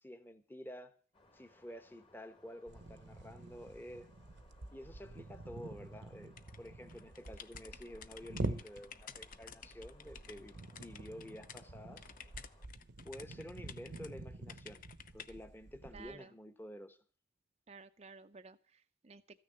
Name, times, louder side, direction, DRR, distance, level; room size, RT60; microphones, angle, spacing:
voice 1, 0.0-1.0 1.3-4.1 4.7-12.1 13.0-14.8 15.1-17.0, equal, 10° left, 1.0 m, -50 dB
sound 1, 1.1-12.7, left 2 dB, 25° left, 1.5 m, -66 dB
sound 2, 2.7-16.1, right 2 dB, 60° right, 0.8 m, -47 dB
sound 3, 6.4-11.6 12.0-14.1 14.5-15.3, left 8 dB, 45° left, 0.7 m, -53 dB
voice 2, 15.9-16.3 17.7-19.4, right 4 dB, 30° right, 0.5 m, -55 dB
14.0 x 6.6 x 9.0 m
head